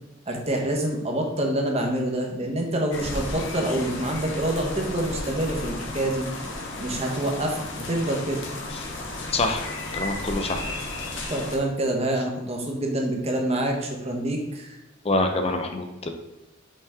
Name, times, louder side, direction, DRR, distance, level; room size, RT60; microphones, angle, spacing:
voice 1, 0.3-6.3 6.8-8.4 11.3-14.8, right 1 dB, 30° right, 1 dB, 1.1 m, -26 dB
sound 1, 2.9-11.6, left 2 dB, 65° left, 1.1 m, -34 dB
voice 2, 9.3-9.7 9.9-10.6 15.0-16.1, left 2 dB, 30° left, 5 dB, 0.6 m, -25 dB
5.4 x 5.1 x 3.6 m, 1.0 s
head